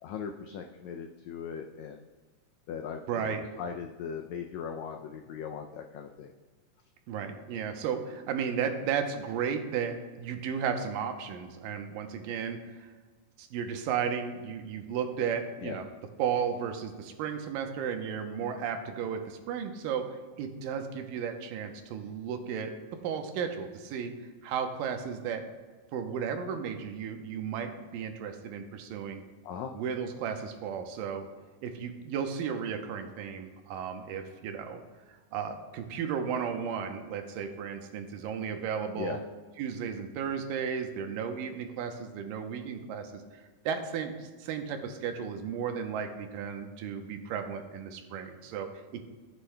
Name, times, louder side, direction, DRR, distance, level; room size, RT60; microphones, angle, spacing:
voice 1, 0.0-2.0 2.7-6.3 15.6-15.8 29.4-29.7 39.0-39.2, left 7 dB, 90° left, 4 dB, 1.6 m, -39 dB
voice 2, 3.1-3.4 7.1-12.9 13.4-15.9 16.2-20.1 20.4-22.7 23.0-24.1 24.4-25.4 25.9-29.2 29.7-31.3 31.6-34.8 35.1-39.2 39.6-43.2 43.7-49.0, right 7 dB, 90° right, 6 dB, 2.5 m, -34 dB
14.5 x 8.1 x 2.2 m, 1.3 s
omnidirectional pair, 3.8 m